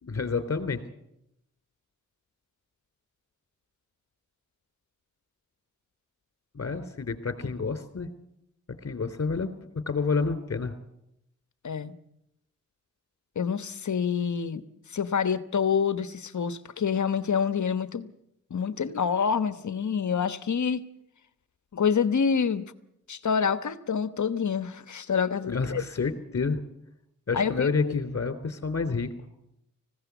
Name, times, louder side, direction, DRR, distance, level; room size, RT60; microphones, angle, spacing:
voice 1, 0.0-0.8 6.5-8.1 8.8-9.5 9.9-10.7 25.5-26.6 27.3-29.1, left 4 dB, 45° left, 10 dB, 3.2 m, -29 dB
voice 2, 13.3-14.6 14.9-18.1 18.5-20.8 21.7-22.7 23.1-25.8 27.3-28.0, left 6 dB, 60° left, 13 dB, 1.2 m, -27 dB
19.5 x 16.0 x 8.2 m, 0.81 s
cardioid pair, 45°, 32 cm